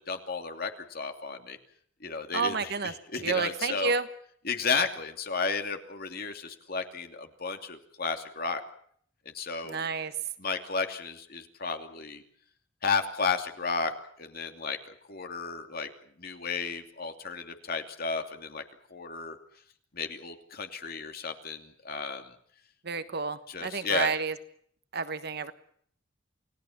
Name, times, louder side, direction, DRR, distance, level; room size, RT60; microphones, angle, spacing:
voice 1, 0.1-1.6 2.0-3.9 4.4-8.6 9.2-9.9 10.4-12.2 12.8-13.9 14.2-15.9 16.2-18.6 18.9-19.4 19.9-22.3 23.5-24.1, left 5 dB, 50° left, 6 dB, 2.8 m, -33 dB
voice 2, 2.3-2.9 3.2-4.0 9.6-10.1 22.8-24.3 24.9-25.5, right 5 dB, 55° right, 11 dB, 1.3 m, -30 dB
29.0 x 18.5 x 7.4 m, 0.63 s
head